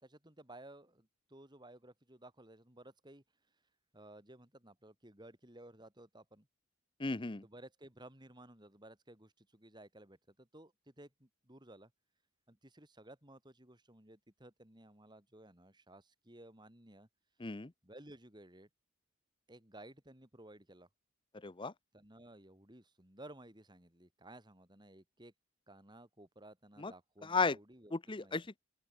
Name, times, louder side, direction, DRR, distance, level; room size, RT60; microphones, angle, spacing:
voice 1, 0.0-3.2 3.9-6.5 7.4-11.9 12.5-17.1 17.8-18.7 19.5-20.9 21.9-25.3 25.7-28.4, right 1 dB, 20° right, 3.6 m, -56 dB
voice 2, 7.0-7.4 17.4-17.7 21.4-21.7 26.8-26.9 27.2-27.6 27.9-28.6, left 4 dB, 25° left, 0.7 m, -35 dB
open air
head